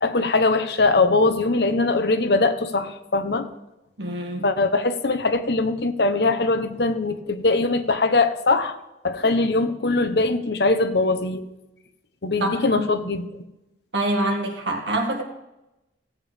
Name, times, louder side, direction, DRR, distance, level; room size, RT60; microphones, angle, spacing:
voice 1, 0.0-3.5 4.4-8.8 9.0-11.4 12.2-13.3, left 3 dB, 65° left, 8 dB, 0.9 m, -21 dB
voice 2, 4.0-4.5 12.4-12.8 13.9-15.2, right 1 dB, 85° right, 3 dB, 1.9 m, -25 dB
16.5 x 8.3 x 3.5 m, 0.94 s
head